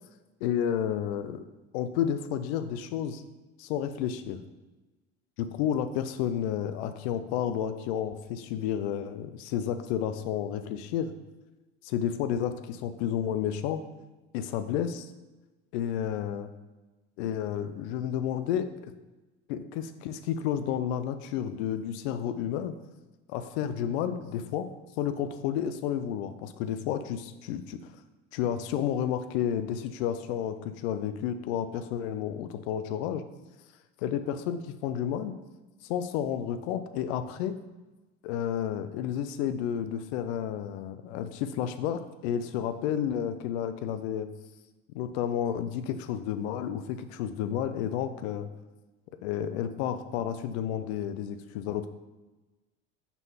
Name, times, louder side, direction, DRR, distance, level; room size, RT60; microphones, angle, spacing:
voice 1, 0.4-1.4 1.7-3.2 3.6-4.4 5.4-11.1 11.8-13.8 14.3-15.1 15.7-16.5 17.2-18.9 19.5-22.7 23.3-24.7 25.0-27.8 28.3-33.2 34.0-35.3 35.8-37.6 38.2-44.3 44.9-48.5 49.2-51.9, left 9 dB, 90° left, 10 dB, 0.5 m, -31 dB
6.0 x 3.7 x 5.5 m, 1.1 s
supercardioid pair, 110°, 32 cm